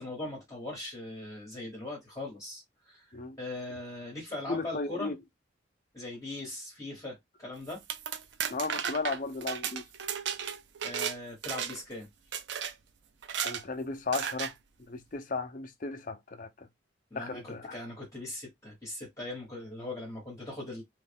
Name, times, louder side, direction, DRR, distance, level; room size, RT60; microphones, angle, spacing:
voice 1, 0.0-3.1 3.4-5.1 5.9-7.8 10.8-12.1 17.1-20.8, left 2 dB, 15° left, 1.3 m, -40 dB
voice 2, 4.5-5.2 8.5-9.8 13.4-14.5 14.9-16.7 17.1-17.8, left 3 dB, 45° left, 0.6 m, -35 dB
sound 1, 7.7-11.2 11.4-11.9 12.3-12.7 13.2-13.6 14.1-14.5, right 8 dB, 65° right, 0.5 m, -34 dB
3.2 x 2.4 x 3.5 m
head